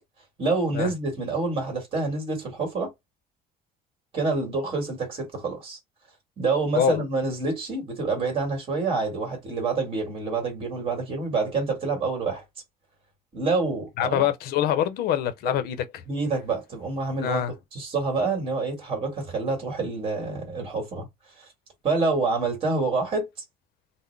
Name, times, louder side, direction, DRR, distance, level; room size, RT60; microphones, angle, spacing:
voice 1, 0.4-2.9 4.1-5.8 6.4-12.4 13.3-14.3 15.4-15.6 16.1-17.4 17.7-21.1 21.4-21.5 21.8-23.3, right 3 dB, 35° right, 1.6 m, -27 dB
voice 2, 14.0-16.0 17.2-17.5, left 10 dB, 75° left, 0.6 m, -25 dB
3.7 x 2.0 x 3.2 m
cardioid pair, 150°, 16 cm